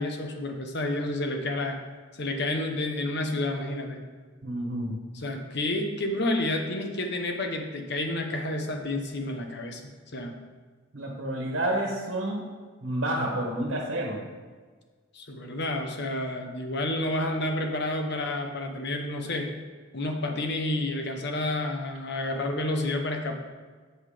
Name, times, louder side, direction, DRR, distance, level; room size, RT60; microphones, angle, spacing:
voice 1, 0.0-1.8 2.2-4.0 5.1-9.8 10.1-10.4 15.1-19.5 19.9-23.3, left 1 dB, 55° left, 4 dB, 1.0 m, -30 dB
voice 2, 4.4-5.0 10.9-12.5 12.8-14.2, right 1 dB, 70° right, -1 dB, 1.5 m, -29 dB
7.9 x 5.6 x 5.0 m, 1.5 s
head